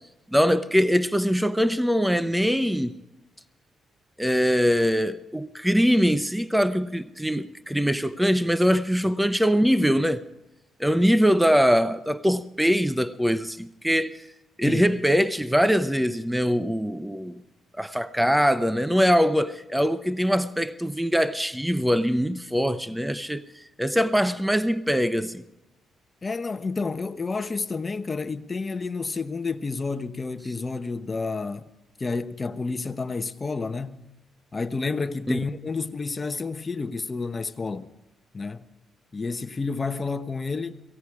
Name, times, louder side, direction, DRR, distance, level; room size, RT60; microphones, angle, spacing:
voice 1, 0.3-3.0 4.2-10.2 10.8-14.2 14.6-17.4 17.8-25.4 35.3-35.4, equal, 5° right, 0.7 m, -22 dB
voice 2, 26.2-31.7 32.0-34.0 34.5-37.9 38.3-38.7 39.1-40.8, left 4 dB, 30° left, 1.1 m, -30 dB
18.5 x 16.0 x 4.8 m
cardioid pair, 90°, 0 cm